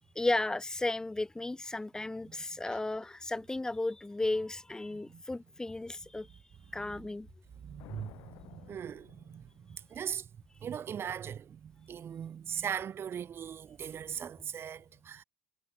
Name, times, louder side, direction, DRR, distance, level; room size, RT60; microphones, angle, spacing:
voice 1, 0.2-6.3 6.7-7.3, left 2 dB, 10° left, 0.7 m, -34 dB
voice 2, 4.9-5.2 7.6-9.4 9.9-10.3 10.6-15.2, right 8 dB, 40° right, 1.1 m, -39 dB
sound 1, 7.4-9.9, left 21 dB, 70° left, 4.4 m, -54 dB
supercardioid pair, 85°, 6 cm